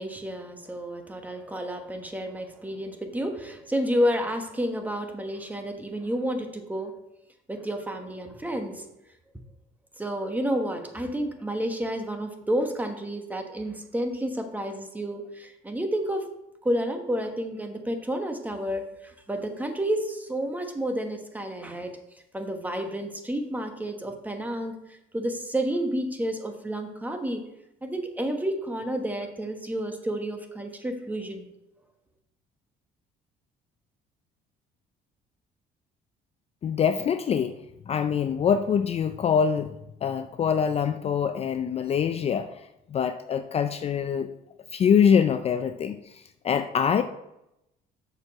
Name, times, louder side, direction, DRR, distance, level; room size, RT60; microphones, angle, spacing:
voice 1, 0.0-6.9 7.5-8.8 10.0-16.3 16.6-18.8 19.3-21.9 22.3-24.7 25.1-27.4 27.8-31.5, equal, 10° right, 5 dB, 1.1 m, -30 dB
voice 2, 36.6-37.5 37.9-39.7 40.0-42.5 42.9-44.3 44.7-47.0, left 7 dB, 35° left, 9 dB, 0.4 m, -24 dB
6.5 x 4.9 x 5.9 m, 0.87 s
cardioid pair, 110°, 17 cm